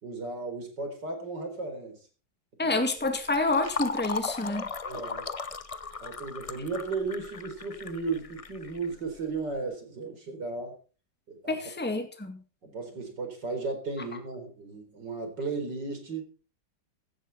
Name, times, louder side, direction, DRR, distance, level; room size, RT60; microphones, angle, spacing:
voice 1, 0.0-2.0 2.6-2.8 4.8-5.3 6.0-10.7 11.3-11.6 12.6-16.3, right 3 dB, 65° right, 5 dB, 4.9 m, -35 dB
voice 2, 2.6-4.6 11.5-12.4, left 2 dB, 5° left, 6 dB, 2.1 m, -28 dB
Fill (with liquid), 3.0-9.4, left 4 dB, 55° left, 0.3 m, -37 dB
16.5 x 11.5 x 4.2 m, 0.37 s
omnidirectional pair, 2.0 m